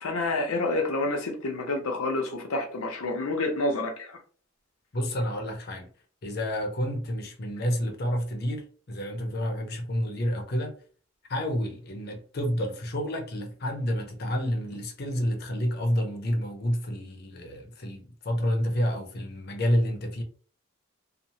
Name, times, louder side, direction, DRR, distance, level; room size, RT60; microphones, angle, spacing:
voice 1, 0.0-4.2, left 2 dB, 90° left, 0.7 m, -28 dB
voice 2, 4.9-5.9 6.2-10.7 11.3-20.2, equal, 50° left, 0.6 m, -29 dB
2.9 x 2.0 x 2.7 m
head